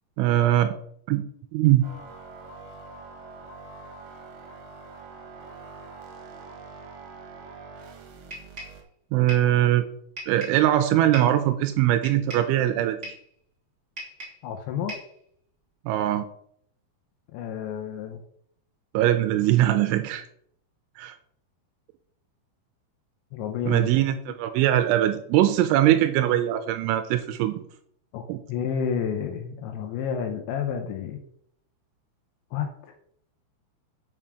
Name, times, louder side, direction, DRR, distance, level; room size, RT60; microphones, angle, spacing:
voice 1, 0.2-0.7 1.1-1.8 9.1-9.9 10.3-13.0 15.9-16.3 18.9-20.3 21.0-21.2 23.7-27.6 28.3-28.4, right 13 dB, 85° right, 9 dB, 2.8 m, -21 dB
sound 1, 1.8-8.8, right 3 dB, 65° right, 2.7 m, -44 dB
sound 2, 8.3-8.8 9.3-9.5 10.2-10.6 11.1-11.4 12.0-12.5 13.0-13.3 14.0-14.5 14.9-15.2, right 1 dB, 15° right, 3.6 m, -39 dB
voice 2, 14.4-15.0 17.3-18.2 23.3-23.9 28.1-28.2 28.5-31.2 32.5-32.7, left 7 dB, 75° left, 4 dB, 2.9 m, -30 dB
7.1 x 5.5 x 6.1 m, 0.68 s
omnidirectional pair, 5.8 m